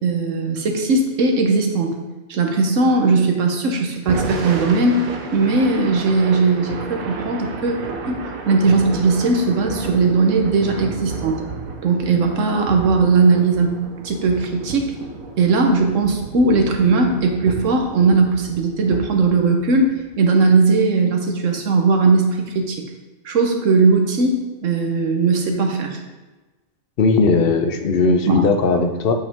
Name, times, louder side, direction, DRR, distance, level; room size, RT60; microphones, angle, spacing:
voice 1, 0.0-1.9 2.3-5.0 5.3-7.7 8.1-11.4 11.8-13.7 14.0-14.9 15.4-19.9 20.2-22.8 23.2-26.0 28.3-28.4, right 3 dB, 65° right, 3 dB, 1.3 m, -18 dB
Thunder / Rain, 3.9-20.2, right 4 dB, 85° right, 1.2 m, -32 dB
voice 2, 27.0-29.1, left 4 dB, 55° left, 6 dB, 0.7 m, -17 dB
8.5 x 5.1 x 3.5 m, 1.2 s
omnidirectional pair, 1.4 m